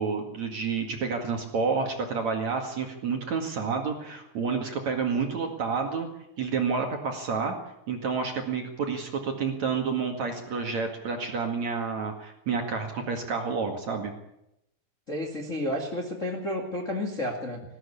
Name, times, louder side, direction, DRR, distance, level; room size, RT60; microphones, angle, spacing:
voice 1, 0.0-6.1 6.4-7.5 7.9-14.1, right 5 dB, 50° right, 2 dB, 2.4 m, -29 dB
voice 2, 15.1-17.6, left 1 dB, 55° left, 0 dB, 0.8 m, -31 dB
20.5 x 15.0 x 8.6 m, 0.82 s
omnidirectional pair, 5.8 m